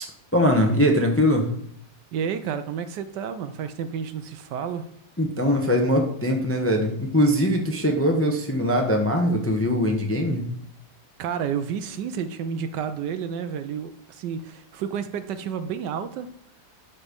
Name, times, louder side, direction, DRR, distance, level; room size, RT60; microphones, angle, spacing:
voice 1, 0.3-1.5 5.2-10.4, equal, 10° left, 3 dB, 0.6 m, -21 dB
voice 2, 2.1-4.8 11.2-16.3, right 7 dB, 75° right, 11 dB, 1.2 m, -30 dB
11.5 x 4.3 x 5.2 m, 0.67 s
omnidirectional pair, 2.0 m